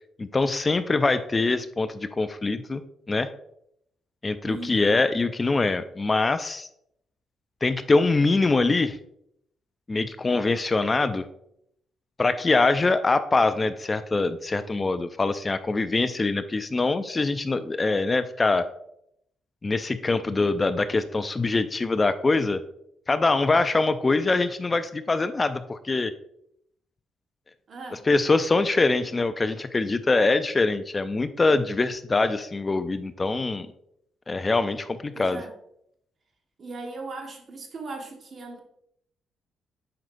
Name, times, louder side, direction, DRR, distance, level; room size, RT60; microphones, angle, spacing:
voice 1, 0.2-2.8 3.1-3.3 4.2-6.7 7.6-9.0 9.9-11.2 12.2-18.6 19.6-22.6 23.1-26.1 28.1-33.7 34.3-35.4, left 3 dB, 25° left, 12 dB, 0.4 m, -23 dB
voice 2, 4.4-5.0 27.7-28.0 35.1-35.5 36.6-38.6, right 3 dB, 50° right, 3 dB, 1.5 m, -38 dB
7.7 x 5.5 x 2.6 m, 0.73 s
cardioid pair, 90°, 0 cm